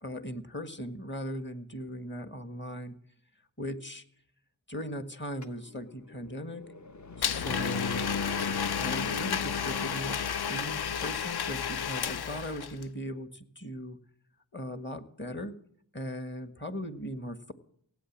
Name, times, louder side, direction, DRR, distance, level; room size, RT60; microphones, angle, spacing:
voice 1, 0.0-3.0 3.6-4.0 4.7-6.7 7.2-8.1 8.7-10.2 10.5-14.0 14.5-15.5 15.9-17.5, equal, 25° left, 10 dB, 1.7 m, -38 dB
sound 1, 5.4-11.0, left 4 dB, 40° left, 1.0 m, -37 dB
Domestic sounds home sounds, 7.2-12.9, left 7 dB, 60° left, 0.6 m, -32 dB
17.0 x 8.7 x 7.4 m, 0.64 s
cardioid pair, 50°, 44 cm